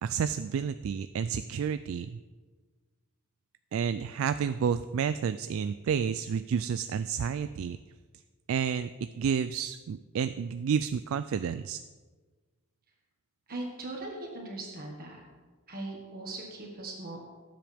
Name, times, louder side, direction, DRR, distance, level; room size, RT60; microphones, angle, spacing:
voice 1, 0.0-2.2 3.7-7.8 8.5-8.9 9.2-11.8, right 7 dB, 65° right, 12 dB, 0.3 m, -30 dB
voice 2, 13.5-15.2 15.7-17.2, right 2 dB, 45° right, -1 dB, 1.7 m, -39 dB
18.0 x 7.6 x 3.5 m, 1.4 s
head